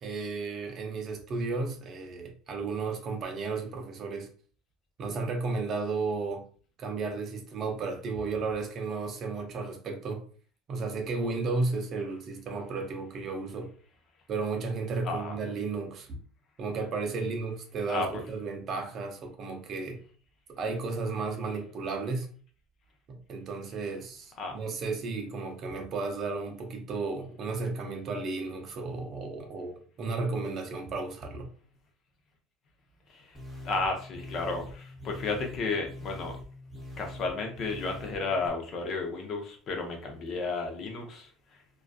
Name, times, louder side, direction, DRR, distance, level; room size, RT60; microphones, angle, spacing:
voice 1, 0.0-4.3 5.0-6.5 6.8-10.2 10.7-13.7 14.3-16.2 16.6-20.0 20.5-22.3 23.1-31.5, right 3 dB, 45° right, 0.5 m, -33 dB
voice 2, 15.0-15.4 17.9-18.1 24.4-24.6 33.1-33.3 33.6-36.4 37.0-41.3, left 3 dB, 45° left, 0.7 m, -33 dB
sound 1, 33.3-38.5, left 1 dB, 5° left, 0.9 m, -44 dB
2.4 x 2.3 x 2.3 m
supercardioid pair, 110°, 0 cm